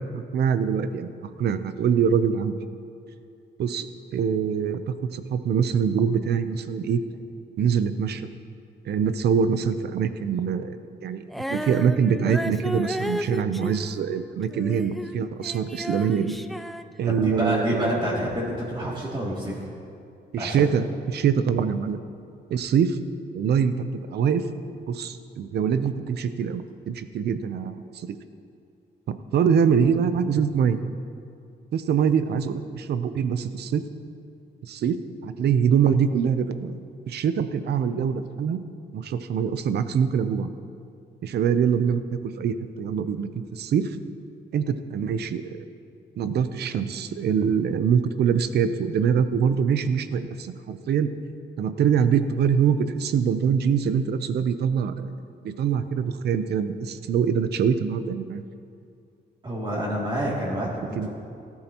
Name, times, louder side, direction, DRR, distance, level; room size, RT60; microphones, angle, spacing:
voice 1, 0.1-1.1 1.4-2.6 3.6-4.8 5.1-7.0 7.6-8.3 8.9-16.4 17.0-18.0 20.3-22.0 22.5-23.0 23.3-24.4 24.9-28.2 29.1-30.8 31.7-33.8 34.6-36.8 37.1-38.6 38.9-40.5 41.2-44.0 44.5-45.7 46.2-51.1 51.6-55.1 55.4-58.4 61.0-61.1, right 7 dB, 70° right, 11 dB, 0.7 m, -24 dB
Female singing, 11.3-15.2 15.4-17.5, equal, ahead, 0.3 m, -33 dB
voice 2, 17.1-19.7 20.4-20.7 59.4-61.1, equal, 25° right, -6 dB, 2.7 m, -28 dB
18.0 x 12.5 x 3.0 m, 2.4 s
cardioid pair, 140°, 18 cm